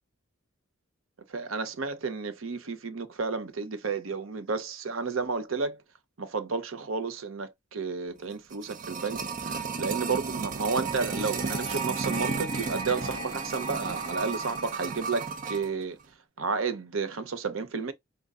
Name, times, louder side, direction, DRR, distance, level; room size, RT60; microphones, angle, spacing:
voice 1, 1.3-5.8 6.2-16.0 16.4-17.9, right 4 dB, 90° right, 0.7 m, -32 dB
sound 1, 8.3-15.7 16.0-16.1, right 5 dB, 40° right, 0.5 m, -33 dB
sound 2, 10.6-15.6, left 1 dB, 20° right, 1.0 m, -42 dB
5.3 x 2.2 x 3.6 m
head